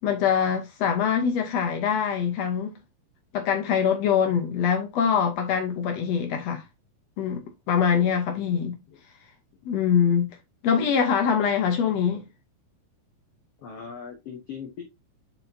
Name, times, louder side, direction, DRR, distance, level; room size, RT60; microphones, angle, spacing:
voice 1, 0.0-2.8 3.3-6.6 7.2-8.8 9.6-10.3 10.6-12.3, left 7 dB, 70° left, 1.6 m, -24 dB
voice 2, 7.9-9.0 13.6-14.8, left 6 dB, 85° left, 1.3 m, -41 dB
8.6 x 4.4 x 2.8 m
omnidirectional pair, 4.4 m